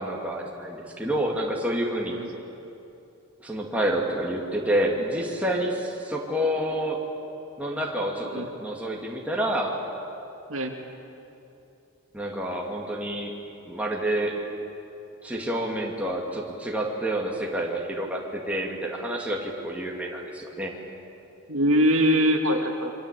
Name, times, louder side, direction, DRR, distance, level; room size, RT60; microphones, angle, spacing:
voice 1, 0.0-2.2 3.4-7.0 7.6-9.7 12.1-13.4 13.7-14.4 15.2-20.7, right 1 dB, 5° right, -2 dB, 2.7 m, -28 dB
voice 2, 21.5-22.9, equal, 65° right, 3 dB, 2.4 m, -22 dB
27.0 x 24.0 x 8.5 m, 2.9 s
head